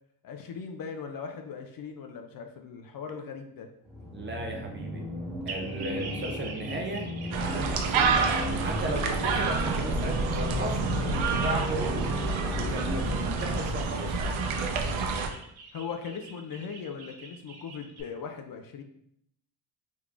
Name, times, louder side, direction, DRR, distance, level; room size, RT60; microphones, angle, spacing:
voice 1, 0.2-3.7 15.7-18.8, left 6 dB, 50° left, 5 dB, 0.5 m, -39 dB
sound 1, 3.8-13.6, equal, 5° left, 1.1 m, -35 dB
voice 2, 4.1-5.0 5.5-10.9 11.2-12.1 12.5-14.4, right 1 dB, 25° right, 1 dB, 0.5 m, -36 dB
sound 2, 5.5-18.0, right 4 dB, 55° right, 0.7 m, -45 dB
sound 3, 7.3-15.3, right 4 dB, 85° right, 0.6 m, -28 dB
3.5 x 3.1 x 2.4 m, 0.73 s
cardioid pair, 100°, 47 cm